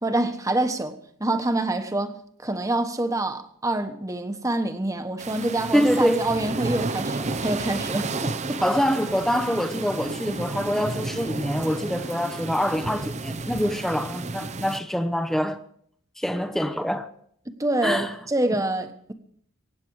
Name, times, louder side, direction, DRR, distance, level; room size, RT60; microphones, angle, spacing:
voice 1, 0.0-2.2 2.4-8.6 17.6-19.1, right 2 dB, 15° right, 1.2 m, -26 dB
sound 1, 5.2-14.8, right 3 dB, 35° right, 0.7 m, -32 dB
voice 2, 5.7-6.3 8.6-15.6 16.2-17.1 17.8-18.2 18.6-18.7, equal, ahead, 0.8 m, -25 dB
24.0 x 9.5 x 4.8 m
head